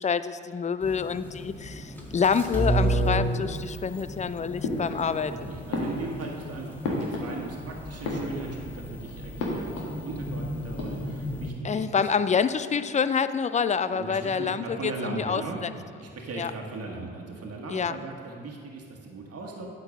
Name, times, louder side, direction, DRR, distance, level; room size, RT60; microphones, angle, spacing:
voice 1, 0.0-5.3 11.6-15.7 16.4-16.5 17.7-18.0, left 6 dB, 25° left, 14 dB, 0.4 m, -27 dB
sound 1, 0.8-11.5, right 1 dB, 5° left, 1.9 m, -33 dB
sound 2, 4.6-5.3 5.7-7.6 7.9-8.8 9.4-10.0 10.3-10.4 10.6-11.3, left 2 dB, 80° left, 1.5 m, -33 dB
voice 2, 5.3-12.1 13.9-19.7, right 3 dB, 50° right, -1 dB, 1.5 m, -38 dB
9.5 x 4.6 x 6.4 m, 2.1 s
hypercardioid pair, 50°, 31 cm